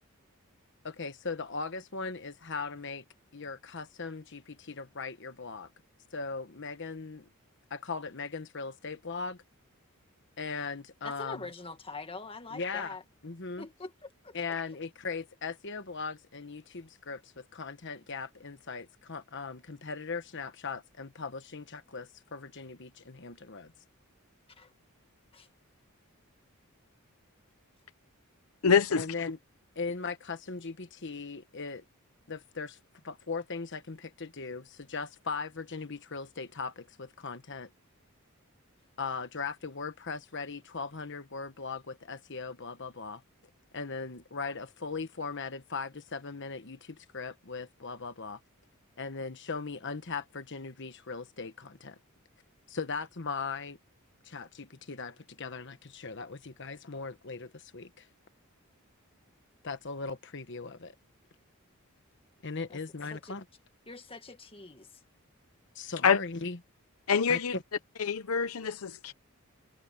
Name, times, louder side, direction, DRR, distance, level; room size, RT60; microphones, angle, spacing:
voice 1, 0.8-3.0 3.3-5.7 6.1-7.3 7.7-9.4 10.4-11.5 12.5-13.0 13.2-13.6 14.3-23.7 28.9-29.4 29.7-31.8 32.3-32.8 33.0-37.7 39.0-43.2 43.7-48.4 49.0-52.0 52.7-53.8 54.2-58.1 59.6-60.9 62.4-63.4 65.7-66.6 67.3-67.6, left 4 dB, 55° left, 1.2 m, -39 dB
voice 2, 11.0-13.0 13.6-14.4 24.6-24.7 25.3-25.5 62.7-62.8 63.1-63.4 63.9-64.9, left 3 dB, 25° left, 1.9 m, -44 dB
voice 3, 28.6-29.1 66.0-66.2 67.1-67.5 68.0-69.1, left 6 dB, 80° left, 0.8 m, -25 dB
head